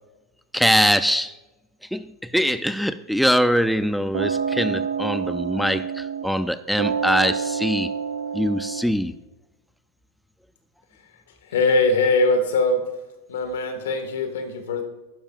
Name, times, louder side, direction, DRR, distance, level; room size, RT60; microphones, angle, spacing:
voice 1, 0.5-1.3 1.9-7.9 8.3-9.1, equal, ahead, 0.3 m, -22 dB
sound 1, 4.1-6.5 6.8-8.8, right 6 dB, 90° right, 0.7 m, -27 dB
voice 2, 11.5-12.8 13.3-14.8, left 2 dB, 85° left, 1.7 m, -21 dB
11.5 x 10.5 x 2.4 m
supercardioid pair, 125°, 0 cm